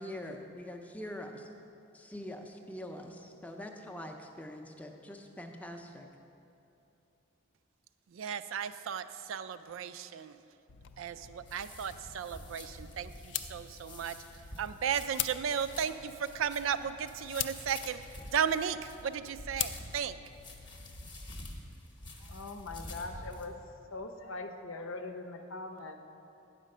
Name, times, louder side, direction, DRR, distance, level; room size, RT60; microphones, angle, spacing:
voice 1, 0.0-1.5 1.9-6.1, left 1 dB, 5° left, 3 dB, 0.5 m, -44 dB
voice 2, 8.1-10.4 11.0-18.0 18.3-20.2, right 7 dB, 75° right, 13 dB, 0.3 m, -35 dB
sound 1, 10.7-21.1, left 11 dB, 60° left, 0.4 m, -43 dB
sound 2, 11.2-23.5, left 1 dB, 25° left, 0.8 m, -48 dB
voice 3, 22.2-23.5 23.9-26.0, left 3 dB, 85° left, 5 dB, 0.7 m, -41 dB
9.5 x 5.1 x 6.5 m, 2.8 s
head